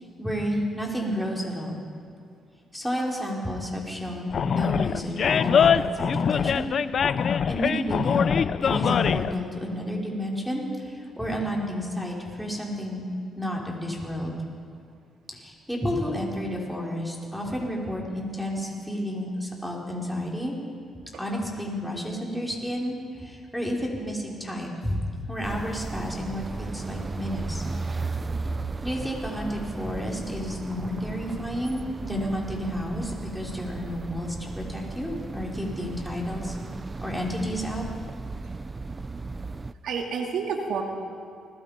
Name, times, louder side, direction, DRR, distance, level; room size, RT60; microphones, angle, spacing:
voice 1, 0.2-1.8 2.7-6.7 7.5-13.1 13.4-14.4 15.3-20.5 21.2-25.0 25.3-27.7 28.8-36.6 37.0-37.8, equal, ahead, -3 dB, 5.5 m, -31 dB
Animal, 4.3-9.3, left 7 dB, 55° left, 0.6 m, -23 dB
sound 1, 25.4-39.7, right 3 dB, 25° right, 0.7 m, -35 dB
voice 2, 39.8-40.8, right 6 dB, 75° right, 2 dB, 2.6 m, -29 dB
30.0 x 20.5 x 5.3 m, 2.3 s
cardioid pair, 90°, 0 cm